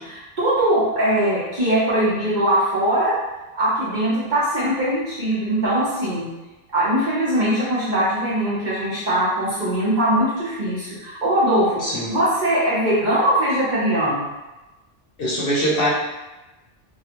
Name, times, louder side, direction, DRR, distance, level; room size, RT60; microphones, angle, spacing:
voice 1, 0.0-3.1 3.5-6.3 6.7-11.8 12.1-14.3, right 1 dB, 45° right, -9 dB, 0.8 m, -21 dB
voice 2, 11.8-12.1 15.2-15.9, equal, 60° left, -6 dB, 0.7 m, -22 dB
2.4 x 2.3 x 2.8 m, 1.1 s
omnidirectional pair, 1.2 m